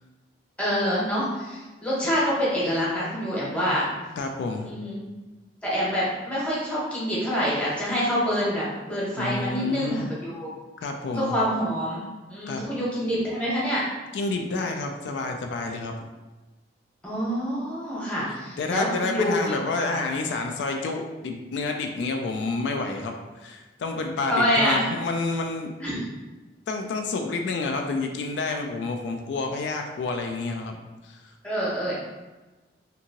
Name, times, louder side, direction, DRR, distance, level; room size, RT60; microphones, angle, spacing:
voice 1, 0.6-3.8 4.7-5.0 5.6-10.5 11.1-12.0 12.3-13.8 17.0-19.5 19.8-20.0 24.2-24.8 25.8-26.0 31.4-32.0, equal, 5° left, -7 dB, 0.8 m, -26 dB
voice 2, 4.2-4.7 9.2-10.1 10.8-11.3 12.5-12.6 14.1-15.9 18.6-25.7 26.7-31.2, left 3 dB, 80° left, 3 dB, 0.3 m, -29 dB
2.7 x 2.6 x 2.8 m, 1.2 s
head